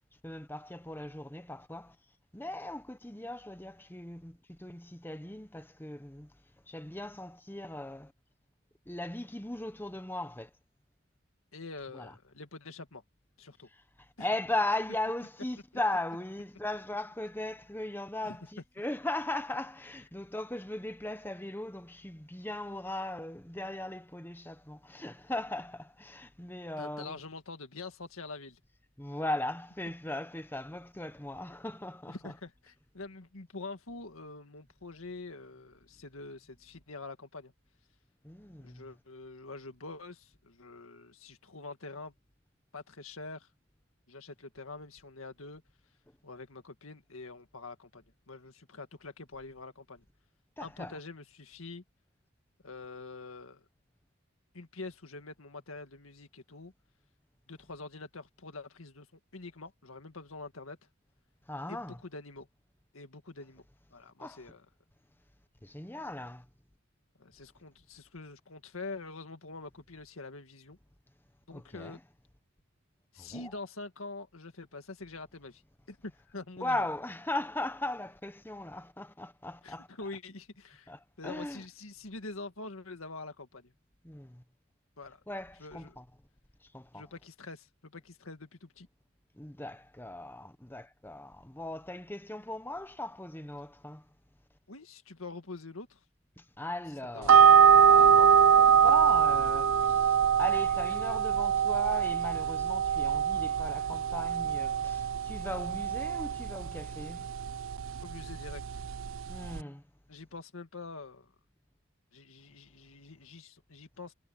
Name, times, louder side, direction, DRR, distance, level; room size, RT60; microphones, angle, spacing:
voice 1, 0.2-2.0 2.3-6.3 6.7-8.1 8.9-10.5 11.9-12.1 13.7-27.2 29.0-32.3 38.2-38.9 50.6-51.0 61.5-62.0 64.2-64.5 65.6-66.5 71.5-72.0 73.2-73.5 76.6-79.9 80.9-81.6 84.0-84.4 85.3-86.0 86.6-87.0 89.3-94.1 96.4-97.4 97.7-107.3 109.3-109.8, left 1 dB, 10° left, 1.1 m, -38 dB
voice 2, 11.5-13.0 13.4-13.7 14.2-14.3 18.2-18.4 26.8-28.6 32.1-37.5 38.6-42.1 42.7-43.5 44.1-45.6 46.2-50.0 50.6-51.8 52.6-53.7 54.5-56.7 57.5-59.1 59.3-60.8 61.7-62.5 62.9-63.7 63.9-64.7 67.2-70.8 71.5-72.0 73.1-75.6 75.9-76.9 79.6-83.7 85.0-85.2 85.6-86.0 86.9-88.9 94.7-96.0 97.1-97.5 108.0-108.9 110.1-111.3 112.1-114.1, left 3 dB, 85° left, 1.9 m, -45 dB
sound 1, 97.3-109.6, right 7 dB, 75° right, 0.5 m, -24 dB
head